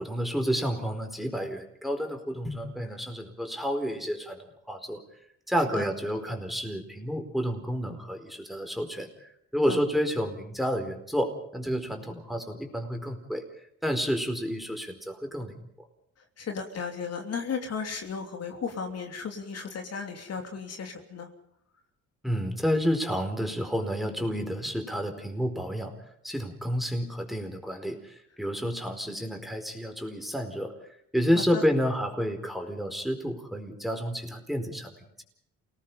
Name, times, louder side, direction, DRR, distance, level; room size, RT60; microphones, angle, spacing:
voice 1, 0.0-5.0 5.5-13.4 13.8-15.6 22.2-25.9 26.2-30.7 31.1-35.2, equal, ahead, 5 dB, 4.6 m, -30 dB
voice 2, 16.4-21.3 31.4-31.6, left 5 dB, 55° left, 4 dB, 3.1 m, -35 dB
28.5 x 19.0 x 5.6 m, 0.71 s
cardioid pair, 90°, 30 cm